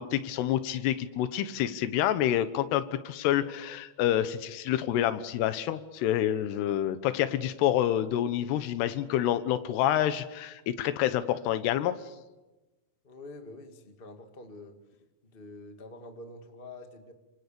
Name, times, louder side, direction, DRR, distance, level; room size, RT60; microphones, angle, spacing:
voice 1, 0.0-12.0, left 11 dB, 80° left, 12 dB, 3.2 m, -28 dB
voice 2, 13.0-14.8 15.2-17.1, left 2 dB, 25° left, 5 dB, 1.3 m, -46 dB
26.5 x 26.5 x 6.9 m, 1.1 s
omnidirectional pair, 4.7 m